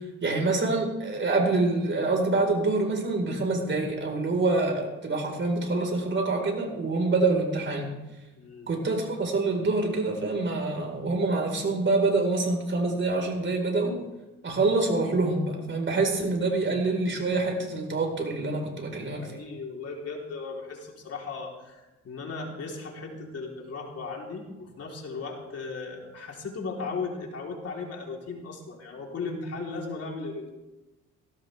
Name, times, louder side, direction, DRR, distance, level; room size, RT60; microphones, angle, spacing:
voice 1, 0.2-7.9 8.7-14.0 14.4-19.3, right 3 dB, 40° right, 2 dB, 4.5 m, -26 dB
voice 2, 8.3-8.7 19.0-30.5, left 4 dB, 55° left, -1 dB, 3.7 m, -37 dB
18.5 x 17.0 x 3.5 m, 1.0 s
cardioid pair, 90°, 30 cm